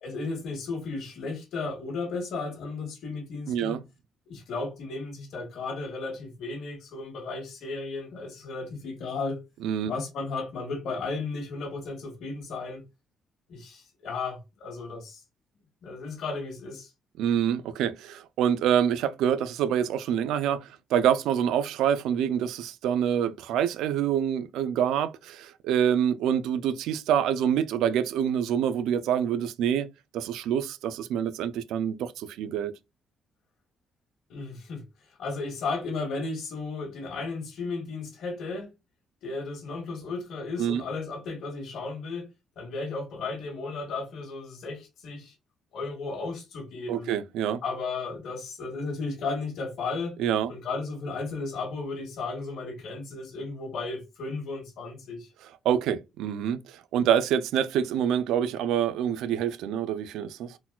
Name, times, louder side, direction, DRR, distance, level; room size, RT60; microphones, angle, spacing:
voice 1, 0.0-3.8 4.3-9.4 9.8-12.8 13.5-15.2 15.8-16.9 34.3-34.8 35.2-38.7 39.2-42.3 42.6-45.3 45.7-47.1 47.6-50.1 50.5-55.3, left 3 dB, 75° left, 1.3 m, -34 dB
voice 2, 3.5-3.8 9.6-9.9 17.2-29.9 30.1-32.7 40.6-40.8 46.9-47.6 50.2-50.5 55.4-60.6, right 9 dB, 90° right, 0.3 m, -26 dB
3.9 x 2.2 x 2.2 m
cardioid pair, 90°, 0 cm